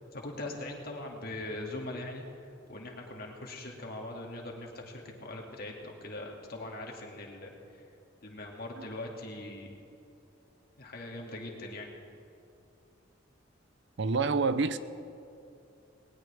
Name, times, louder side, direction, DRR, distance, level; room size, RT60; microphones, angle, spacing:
voice 1, 0.1-2.3 2.7-7.5 8.2-9.7 10.8-11.9, left 2 dB, 55° left, 2.3 m, -41 dB
voice 2, 14.0-14.8, right 4 dB, 65° right, 0.6 m, -27 dB
19.5 x 18.5 x 3.5 m
head